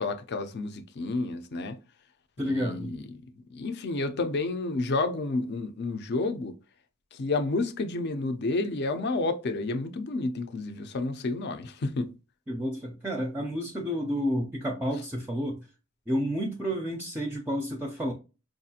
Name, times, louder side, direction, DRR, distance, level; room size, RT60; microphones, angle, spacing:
voice 1, 0.0-1.8 2.4-3.2 3.5-6.5 7.1-12.1, left 3 dB, 50° left, 0.5 m, -30 dB
voice 2, 2.4-2.9 12.5-15.7 16.1-18.1, equal, 10° right, 0.4 m, -30 dB
4.5 x 2.4 x 2.7 m
head